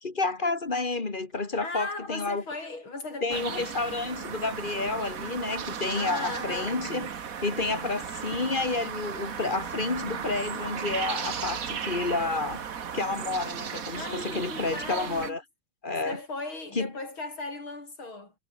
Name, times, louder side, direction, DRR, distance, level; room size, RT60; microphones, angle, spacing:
voice 1, 0.0-2.4 3.2-7.1 7.4-12.6 12.9-15.4 15.8-16.2 16.7-16.9, left 3 dB, 25° left, 1.9 m, -30 dB
voice 2, 1.4-3.5 5.9-6.8 13.9-15.4 16.0-18.3, left 2 dB, 65° left, 6.5 m, -37 dB
sound 1, 3.3-15.3, right 7 dB, 45° right, 1.6 m, -36 dB
omnidirectional pair, 2.4 m